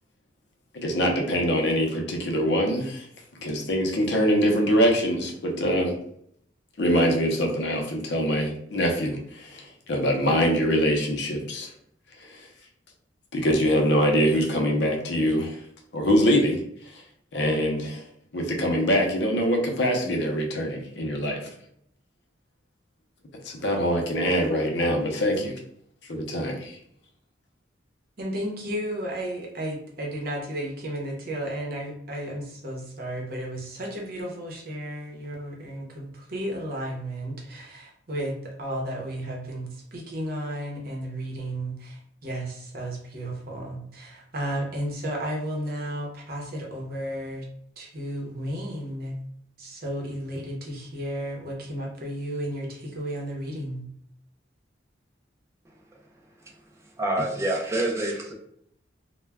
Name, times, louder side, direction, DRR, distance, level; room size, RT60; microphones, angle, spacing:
voice 1, 0.7-3.1 3.4-6.0 6.8-11.7 12.2-12.5 13.3-15.6 15.9-16.6 16.9-17.0 17.3-18.0 18.3-21.5 23.4-25.5 26.1-26.8, equal, 65° left, 2 dB, 0.5 m, -24 dB
voice 2, 28.2-47.4 47.8-49.2 49.6-53.8, right 1 dB, 50° right, -1 dB, 0.7 m, -33 dB
voice 3, 57.0-58.3, right 1 dB, 15° right, -1 dB, 0.4 m, -26 dB
2.2 x 2.1 x 3.3 m, 0.68 s
head